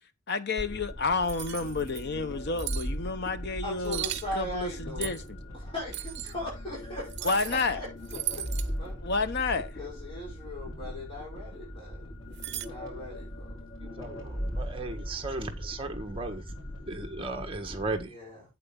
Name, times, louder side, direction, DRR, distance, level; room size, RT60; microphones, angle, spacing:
voice 1, 0.3-4.0 4.4-5.4 7.2-7.8 9.0-9.8, left 4 dB, 55° left, 0.9 m, -30 dB
sound 1, 0.6-18.0, equal, 75° left, 4.8 m, -39 dB
sound 2, 1.3-2.0 2.6-2.9 3.8-4.3 5.0-5.3 5.9-6.3 7.1-7.7 8.0-8.7 12.3-12.7, right 14 dB, 55° right, 0.8 m, -36 dB
voice 2, 3.6-5.2 5.5-7.9 8.3-8.5 8.8-9.0 9.8-12.0 12.5-13.5 18.1-18.4, left 1 dB, 25° left, 5.4 m, -39 dB
voice 3, 13.8-18.1, right 2 dB, 25° right, 1.5 m, -36 dB
8.6 x 7.9 x 3.8 m
head